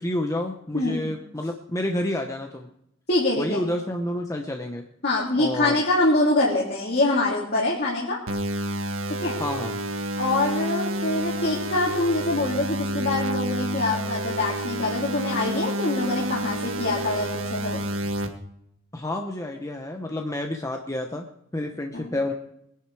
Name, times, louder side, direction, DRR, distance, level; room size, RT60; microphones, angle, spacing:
voice 1, 0.0-2.7 3.4-4.8 5.4-5.8 9.4-9.8 18.9-21.3 21.5-22.3, left 1 dB, 15° left, 3 dB, 0.9 m, -29 dB
voice 2, 0.7-1.0 3.1-3.6 5.0-8.2 9.2-9.4 10.1-17.8 21.9-22.1, left 2 dB, 50° left, -5 dB, 3.2 m, -24 dB
sound 1, 8.3-18.3, right 1 dB, 70° right, 1.7 m, -29 dB
22.0 x 10.5 x 4.8 m, 0.79 s
head